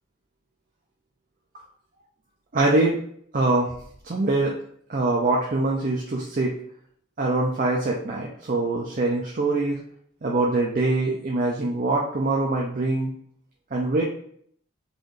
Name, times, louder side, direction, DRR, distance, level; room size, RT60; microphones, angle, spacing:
voice 1, 2.5-3.0 3.3-3.7 4.0-4.6 4.9-6.5 7.2-9.8 10.2-13.1 13.7-14.0, right 2 dB, 40° right, -2 dB, 0.5 m, -23 dB
3.9 x 2.6 x 3.2 m, 0.63 s
head